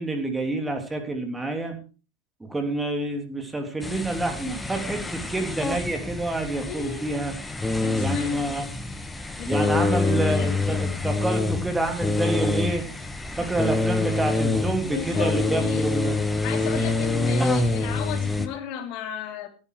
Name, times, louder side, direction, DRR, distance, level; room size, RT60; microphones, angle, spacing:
voice 1, 0.0-1.8 2.4-7.3 8.0-8.7 9.5-12.8 13.4-16.2 17.4-17.5, right 2 dB, 10° right, 5 dB, 3.1 m, -28 dB
sound 1, 3.8-18.5, left 2 dB, 10° left, 1.5 m, -26 dB
voice 2, 6.7-7.1 7.8-8.6 9.4-10.8 14.9-19.5, left 9 dB, 40° left, 5 dB, 3.1 m, -35 dB
17.0 x 8.9 x 4.9 m, 0.35 s
figure-of-eight pair, 90°, 0 cm